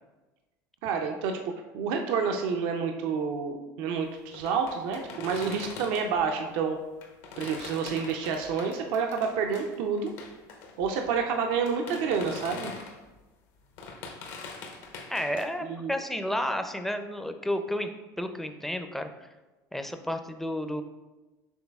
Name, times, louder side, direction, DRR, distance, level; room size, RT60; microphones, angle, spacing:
voice 1, 0.8-1.4 1.7-6.8 7.4-10.1 10.8-12.7 15.6-16.0, right 6 dB, 70° right, 4 dB, 0.4 m, -29 dB
sound 1, 4.3-6.2 7.0-13.2 13.6-15.4, left 4 dB, 70° left, 0.7 m, -43 dB
voice 2, 15.1-17.9 18.2-19.1 19.7-20.8, left 1 dB, 5° left, 7 dB, 0.4 m, -31 dB
6.1 x 3.2 x 2.3 m, 1.1 s
supercardioid pair, 90°, 9 cm